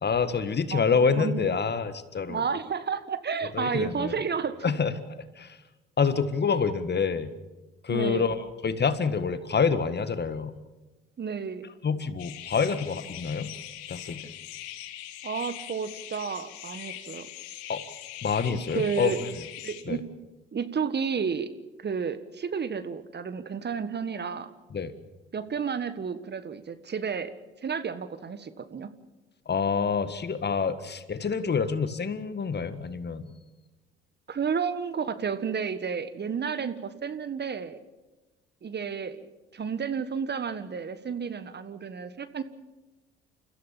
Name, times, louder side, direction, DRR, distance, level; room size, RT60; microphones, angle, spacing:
voice 1, 0.0-2.4 3.5-4.2 4.6-4.9 5.4-5.6 6.0-7.3 7.8-10.5 11.8-13.5 13.9-14.3 17.7-17.8 18.2-19.2 19.9-20.0 24.7-24.9 29.5-33.3, left 5 dB, 35° left, 12 dB, 1.7 m, -27 dB
voice 2, 1.2-1.5 2.3-4.6 7.9-8.2 11.2-11.7 15.2-17.3 18.5-19.3 19.6-20.0 20.5-21.5 21.8-24.5 25.3-27.3 27.6-28.9 34.3-37.8 38.6-42.4, right 6 dB, 35° right, 12 dB, 1.5 m, -31 dB
sound 1, 12.2-19.8, left 13 dB, 70° left, 1.8 m, -41 dB
29.5 x 15.0 x 7.4 m, 1.1 s
hypercardioid pair, 55°, 29 cm